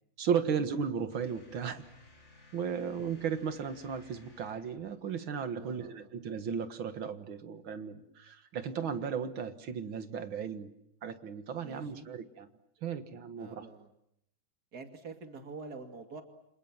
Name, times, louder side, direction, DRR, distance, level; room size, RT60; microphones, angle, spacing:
voice 1, 0.2-1.8 2.5-10.7 11.0-12.5 12.8-13.7, right 7 dB, 90° right, 9 dB, 2.5 m, -35 dB
sound 1, 1.1-5.0, left 2 dB, 70° left, 5.3 m, -58 dB
voice 2, 5.6-6.1 11.6-12.1 13.4-13.9 14.7-16.2, right 4 dB, 50° right, 5 dB, 2.9 m, -47 dB
29.5 x 27.0 x 7.4 m, 0.75 s
omnidirectional pair, 2.1 m